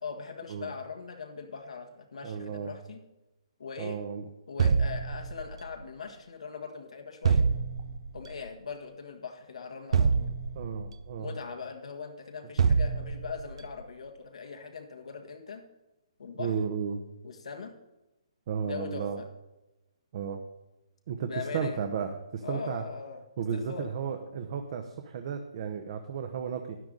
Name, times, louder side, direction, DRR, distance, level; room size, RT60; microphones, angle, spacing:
voice 1, 0.0-3.0 3.6-4.0 4.5-7.5 8.1-10.3 11.2-15.6 16.2-16.5 17.2-17.7 18.6-19.3 21.2-21.9 22.4-23.2 23.5-23.9, left 5 dB, 80° left, 4 dB, 1.6 m, -40 dB
voice 2, 2.2-2.7 3.8-4.3 10.5-11.3 16.4-17.0 18.5-19.2 20.1-20.4 21.1-22.8 23.4-26.8, right 7 dB, 50° right, 5 dB, 1.0 m, -33 dB
sound 1, 4.6-5.7 7.2-8.2 9.9-11.0 12.6-13.6, right 5 dB, 65° right, 0.6 m, -26 dB
12.5 x 9.4 x 3.9 m, 0.99 s
hypercardioid pair, 145°, 3 cm